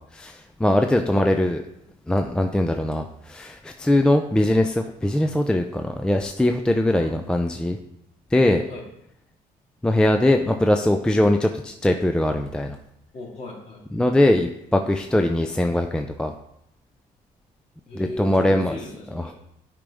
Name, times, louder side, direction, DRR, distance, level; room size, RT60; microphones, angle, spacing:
voice 1, 0.1-1.6 2.1-7.8 8.3-8.6 9.8-12.8 13.9-16.3 18.0-18.7, left 1 dB, 5° left, 5 dB, 0.4 m, -21 dB
voice 2, 13.1-13.8 17.9-19.3, left 2 dB, 40° left, -1 dB, 2.3 m, -37 dB
8.6 x 5.2 x 3.5 m, 0.80 s
cardioid pair, 110°, 17 cm